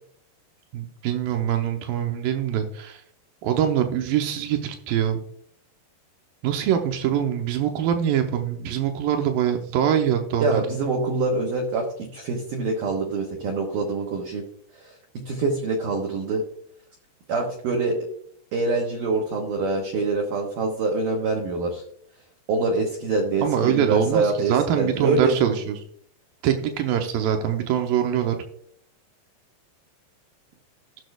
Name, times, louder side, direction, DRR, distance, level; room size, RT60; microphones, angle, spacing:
voice 1, 0.7-3.0 3.4-5.2 6.4-10.8 23.4-25.8 26.4-28.4, right 9 dB, 90° right, 5 dB, 2.0 m, -24 dB
voice 2, 10.4-14.4 14.8-16.4 17.3-18.1 18.5-21.8 22.5-25.4, right 3 dB, 70° right, 0 dB, 2.1 m, -25 dB
18.5 x 6.4 x 2.3 m, 0.65 s
omnidirectional pair, 5.1 m